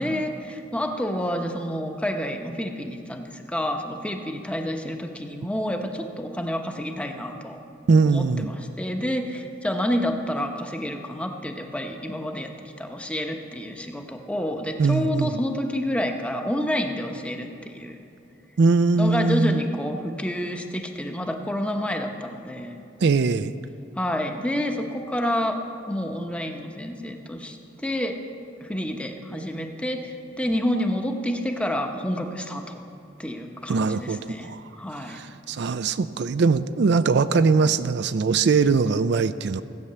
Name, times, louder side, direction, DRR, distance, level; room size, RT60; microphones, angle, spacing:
voice 1, 0.0-7.6 8.0-17.9 19.0-22.8 24.0-25.6 25.9-27.6 27.8-28.2 28.6-32.8 33.2-35.2, equal, 5° left, 4 dB, 0.9 m, -29 dB
voice 2, 7.9-8.5 14.8-15.4 18.6-19.6 23.0-23.5 33.7-34.6 35.1-39.6, right 4 dB, 65° right, 12 dB, 0.4 m, -21 dB
16.0 x 8.5 x 6.8 m, 2.6 s
head